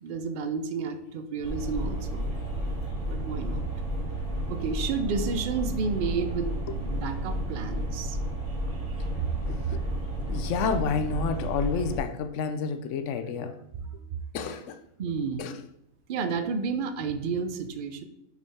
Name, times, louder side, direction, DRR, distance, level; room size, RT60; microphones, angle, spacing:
voice 1, 0.0-2.3 2.9-3.6 4.5-8.2 8.5-9.1 9.6-9.8 13.8-13.9 15.0-15.6 16.1-18.0, right 5 dB, 60° right, 0.5 m, -31 dB
sound 1, 1.4-12.0, right 1 dB, 85° right, 2.9 m, -32 dB
voice 2, 9.5-9.8 10.2-13.6 14.3-14.8 15.4-15.6, left 5 dB, 65° left, 0.8 m, -30 dB
6.1 x 3.8 x 4.1 m
omnidirectional pair, 1.5 m